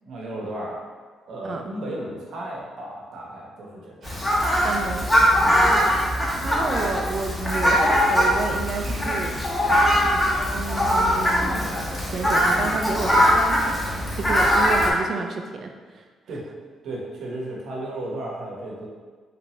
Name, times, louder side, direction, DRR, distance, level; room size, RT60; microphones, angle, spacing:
voice 1, 0.0-0.8 1.2-4.3 5.6-6.0 8.8-9.0 16.3-16.4 16.8-18.9, right 1 dB, 70° right, -3 dB, 0.8 m, -34 dB
Fowl, 4.0-14.9, equal, 15° left, 0.8 m, -21 dB
voice 2, 4.6-5.3 6.4-9.3 10.5-16.0, right 4 dB, 55° right, 5 dB, 0.4 m, -31 dB
3.3 x 2.9 x 3.0 m, 1.5 s
cardioid pair, 90°, 0 cm